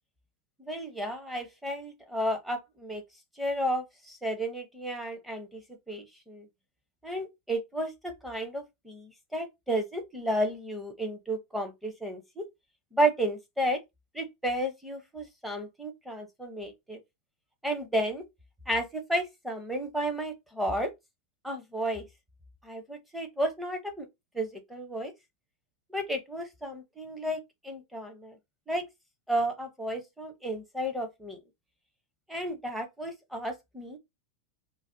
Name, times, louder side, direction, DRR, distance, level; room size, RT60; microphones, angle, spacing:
voice 1, 0.6-3.0 3.4-5.6 5.9-6.5 7.0-12.5 12.9-13.8 14.1-17.0 17.6-18.2 18.7-20.9 21.4-22.1 22.6-24.1 24.3-25.1 25.9-28.4 28.7-28.9 29.3-31.4 32.3-34.0, right 1 dB, 5° right, 0.7 m, -32 dB
3.9 x 2.0 x 2.6 m
supercardioid pair, 145°, 0 cm